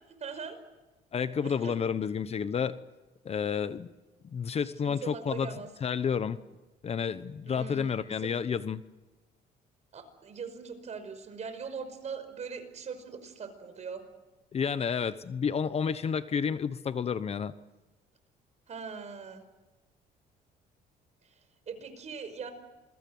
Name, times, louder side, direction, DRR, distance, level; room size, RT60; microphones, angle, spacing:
voice 1, 0.2-0.6 1.4-1.8 4.8-5.7 7.5-8.3 9.9-14.0 18.7-19.4 21.2-21.3 21.7-22.5, right 5 dB, 40° right, 9 dB, 5.4 m, -41 dB
voice 2, 1.1-2.8 3.2-3.9 4.3-5.5 5.8-6.4 6.8-8.8 14.5-17.5, left 7 dB, 35° left, 13 dB, 1.0 m, -30 dB
27.5 x 22.5 x 7.9 m, 1.1 s
cardioid pair, 110°, 17 cm